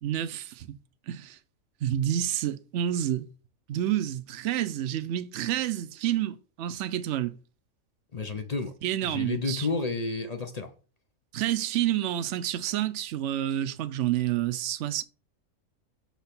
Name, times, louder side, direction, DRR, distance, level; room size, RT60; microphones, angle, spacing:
voice 1, 0.0-0.7 1.1-1.4 1.8-3.2 3.7-7.4 8.8-9.7 11.3-15.0, right 12 dB, 65° right, 0.9 m, -29 dB
voice 2, 8.1-8.7 9.0-10.7, left 3 dB, 40° left, 0.6 m, -31 dB
5.8 x 3.3 x 5.8 m
omnidirectional pair, 1.4 m